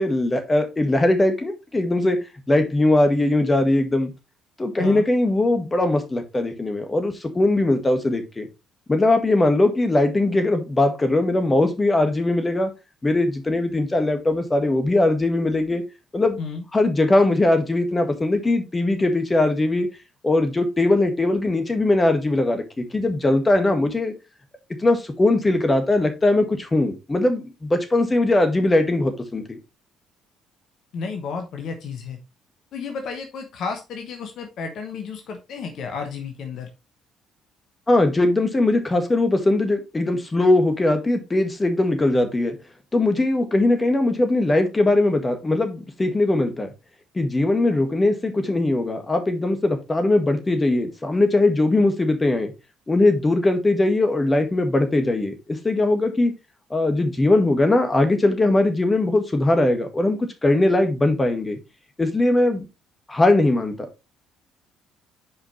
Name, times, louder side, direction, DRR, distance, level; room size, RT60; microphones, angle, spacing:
voice 1, 0.0-2.2 2.5-4.1 4.6-8.5 8.9-12.7 13.0-15.8 16.1-16.4 16.7-19.9 20.2-24.1 24.8-29.6 37.9-42.6 42.9-46.7 47.2-52.5 52.9-56.3 56.7-61.6 62.0-62.7 63.1-63.7, left 2 dB, 20° left, 7 dB, 1.7 m, -20 dB
voice 2, 30.9-32.2 32.7-36.7, left 5 dB, 55° left, 5 dB, 1.2 m, -32 dB
8.6 x 5.2 x 3.2 m, 0.26 s
figure-of-eight pair, 50°, 0 cm